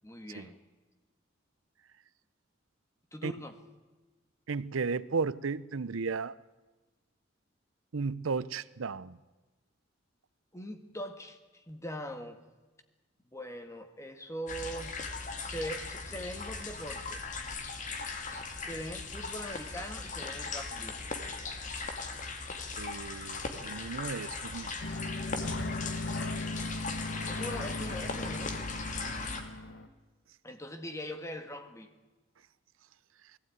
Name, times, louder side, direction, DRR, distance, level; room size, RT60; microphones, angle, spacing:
voice 1, 0.0-0.6 3.1-3.6 10.5-12.4 13.3-15.0 15.4-17.3 18.6-21.0 27.3-28.6 30.4-31.9, equal, 15° left, 7 dB, 1.7 m, -41 dB
voice 2, 4.5-6.3 7.9-9.2 22.8-24.7, right 4 dB, 80° right, 18 dB, 0.6 m, -34 dB
sound 1, 14.5-29.4, left 3 dB, 40° left, 2.2 m, -38 dB
sound 2, 24.8-29.9, left 2 dB, 60° left, 1.4 m, -37 dB
20.5 x 16.0 x 9.3 m, 1.2 s
head